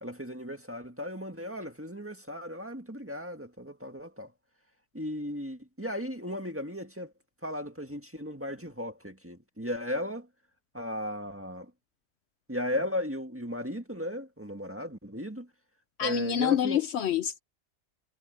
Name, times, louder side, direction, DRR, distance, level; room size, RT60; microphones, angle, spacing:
voice 1, 0.0-4.3 4.9-7.1 7.4-10.3 10.7-11.7 12.5-15.5 16.0-16.8, left 1 dB, 10° right, 1.6 m, -36 dB
voice 2, 16.0-17.4, left 10 dB, 70° left, 0.9 m, -27 dB
omnidirectional pair, 1.3 m